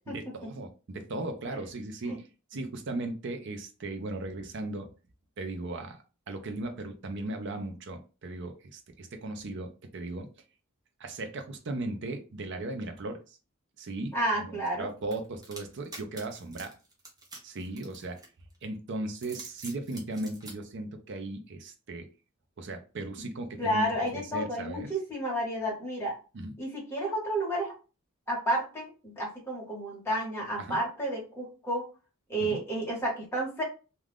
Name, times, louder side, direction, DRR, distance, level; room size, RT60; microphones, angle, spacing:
voice 1, 0.1-4.9 5.4-10.3 11.0-13.4 13.8-16.7 17.4-18.2 18.6-22.1 22.6-23.9 24.1-24.9 26.3-26.5 30.6-30.8 32.5-32.6, right 2 dB, 55° right, 6 dB, 0.5 m, -37 dB
voice 2, 14.1-14.9 23.6-26.1 26.6-27.7 28.3-31.9 32.3-33.6, right 1 dB, 10° left, -3 dB, 1.1 m, -31 dB
sound 1, 15.1-18.6 19.1-20.5, right 2 dB, 15° right, 0.7 m, -46 dB
2.4 x 2.3 x 3.4 m, 0.33 s
head